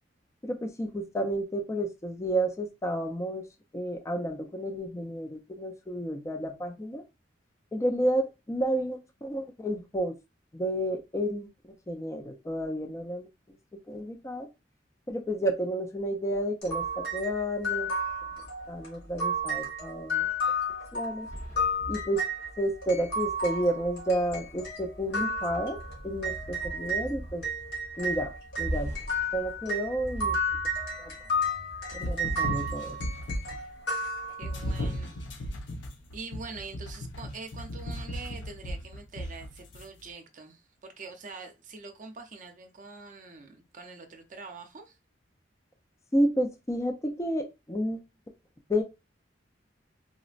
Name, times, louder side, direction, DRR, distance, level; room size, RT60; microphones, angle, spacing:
voice 1, 0.4-3.4 3.7-7.0 7.7-10.2 10.5-11.5 11.9-13.2 13.9-14.5 15.1-18.0 18.7-20.3 20.9-21.3 21.9-22.3 22.6-25.8 26.0-27.4 28.0-28.3 28.6-29.0 29.3-30.4 31.0-31.1 31.9-33.0 46.1-48.0 48.7-48.8, right 1 dB, 15° left, 0.4 m, -31 dB
sound 1, 16.6-27.1 27.4-34.8, equal, 70° left, 1.7 m, -32 dB
sound 2, 21.2-33.7 34.0-34.2 34.5-35.3 35.7-36.1, right 1 dB, 40° left, 1.0 m, -42 dB
sound 3, 31.9-33.7 34.4-39.8, equal, 90° left, 0.6 m, -36 dB
voice 2, 34.4-35.7 36.1-45.0, right 4 dB, 45° right, 0.6 m, -44 dB
3.9 x 2.1 x 2.4 m
head